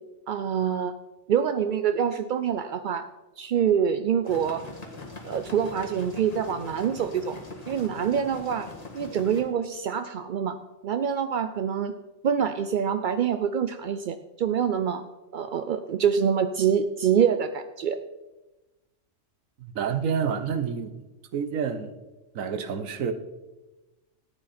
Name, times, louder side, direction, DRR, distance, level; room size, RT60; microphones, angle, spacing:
voice 1, 0.3-0.9 1.3-3.1 3.4-4.6 5.2-7.4 7.7-8.7 8.9-10.6 10.8-11.9 12.2-15.0 15.3-18.0, right 8 dB, 70° right, 0.4 m, -25 dB
sound 1, 4.2-9.4, left 3 dB, 30° left, 1.6 m, -42 dB
voice 2, 19.6-20.9 21.3-21.9 22.3-23.1, right 7 dB, 85° right, 1.3 m, -28 dB
13.5 x 8.9 x 4.2 m
omnidirectional pair, 1.4 m